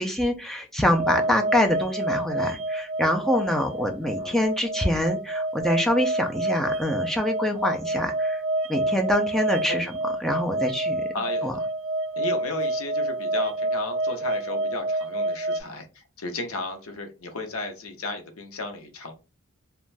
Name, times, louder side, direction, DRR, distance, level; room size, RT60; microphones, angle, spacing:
voice 1, 0.0-8.4 8.7-9.9 10.2-11.0 11.4-11.5, left 1 dB, ahead, 3 dB, 0.3 m, -25 dB
sound 1, 0.8-15.6, right 2 dB, 75° right, 0.4 m, -28 dB
voice 2, 11.1-11.6 12.2-19.1, left 2 dB, 90° left, 5 dB, 0.6 m, -34 dB
2.5 x 2.2 x 3.1 m, 0.31 s
head